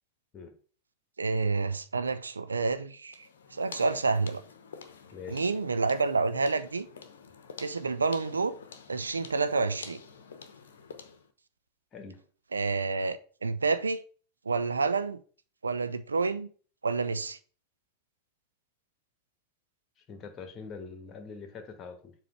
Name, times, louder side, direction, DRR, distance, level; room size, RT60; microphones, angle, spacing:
voice 1, 1.2-4.4 5.3-6.9 7.6-8.5 8.9-10.0 12.5-14.0 14.5-15.2 15.6-16.5 16.8-17.4, right 4 dB, 75° right, 0.4 m, -29 dB
sound 1, 3.1-11.3, left 6 dB, 65° left, 0.8 m, -48 dB
voice 2, 5.1-5.4 11.9-12.2 20.1-22.1, left 5 dB, 30° left, 1.4 m, -43 dB
7.4 x 3.1 x 5.8 m
figure-of-eight pair, 90°, 0 cm